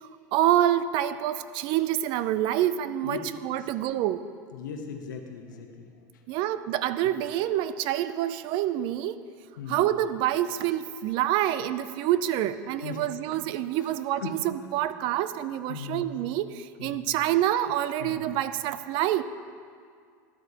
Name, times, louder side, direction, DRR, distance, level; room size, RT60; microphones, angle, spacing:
voice 1, 0.3-4.2 6.3-9.2 9.7-19.2, right 12 dB, 55° right, 13 dB, 0.4 m, -27 dB
voice 2, 4.5-5.9 9.6-9.8 12.8-13.0 14.2-14.4 15.7-16.1 16.8-17.0 18.0-18.3, left 6 dB, 90° left, 4 dB, 0.9 m, -38 dB
12.5 x 8.0 x 2.8 m, 2.2 s
hypercardioid pair, 105°, 10 cm